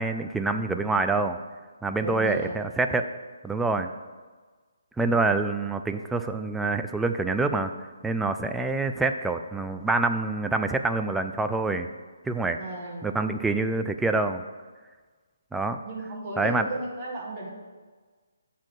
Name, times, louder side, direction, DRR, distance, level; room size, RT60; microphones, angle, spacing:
voice 1, 0.0-1.4 1.8-3.1 3.4-3.9 5.0-7.7 8.0-11.9 12.2-12.6 13.0-14.4 15.5-15.8 16.4-16.7, right 3 dB, 5° right, 7 dB, 0.3 m, -26 dB
voice 2, 2.0-2.5 12.6-13.1 15.8-17.5, right 2 dB, 30° right, -3 dB, 1.5 m, -34 dB
7.2 x 4.2 x 6.5 m, 1.4 s
figure-of-eight pair, 145°, 0 cm